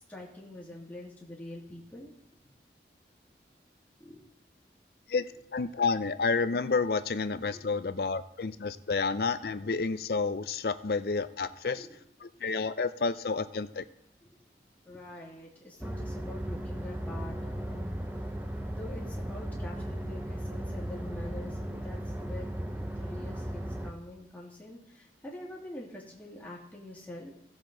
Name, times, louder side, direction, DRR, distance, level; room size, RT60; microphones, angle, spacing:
voice 1, 0.1-2.1 4.0-4.2 7.5-7.7 11.7-11.9 14.8-17.9 18.7-22.5 23.0-27.3, left 1 dB, 10° left, -5 dB, 2.4 m, -45 dB
voice 2, 5.1-11.9 12.2-13.9, left 4 dB, 60° left, 12 dB, 0.5 m, -30 dB
sound 1, 15.8-23.9, right 1 dB, 10° right, 0.6 m, -36 dB
16.5 x 7.2 x 3.9 m, 0.75 s
head